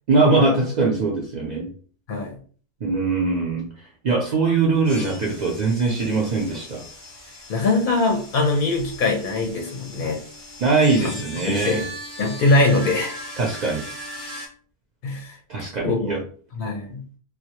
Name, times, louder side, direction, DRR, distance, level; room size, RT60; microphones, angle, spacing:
voice 1, 0.1-1.7 2.8-3.7 4.0-6.8 10.6-11.8 13.4-13.8 15.5-16.2, right 3 dB, 55° right, -1 dB, 0.5 m, -21 dB
sound 1, 4.8-14.5, equal, 15° left, 0.7 m, -38 dB
voice 2, 7.5-10.2 11.0-11.1 11.5-11.8 12.2-13.1 15.0-15.4 15.8-16.2 16.5-17.0, left 2 dB, 60° left, 2 dB, 0.6 m, -22 dB
2.2 x 2.0 x 2.8 m, 0.43 s
omnidirectional pair, 1.0 m